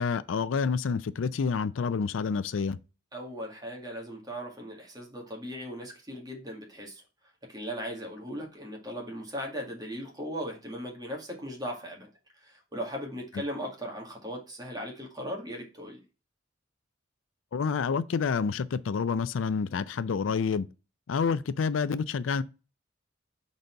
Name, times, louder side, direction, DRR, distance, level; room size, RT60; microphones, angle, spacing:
voice 1, 0.0-2.8 17.5-20.7 21.1-22.4, left 5 dB, 90° left, 0.4 m, -28 dB
voice 2, 3.1-7.0 7.5-12.1 12.4-16.0, equal, 20° right, 1.9 m, -38 dB
5.2 x 4.1 x 4.5 m
head